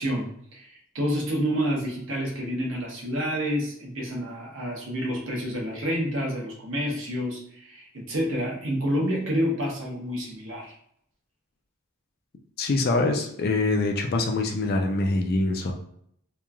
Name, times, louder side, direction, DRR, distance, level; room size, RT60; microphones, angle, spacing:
voice 1, 0.0-10.7, equal, 60° right, -2 dB, 0.9 m, -29 dB
voice 2, 12.6-15.7, left 2 dB, 45° left, 3 dB, 0.4 m, -24 dB
3.0 x 2.3 x 2.3 m, 0.68 s
head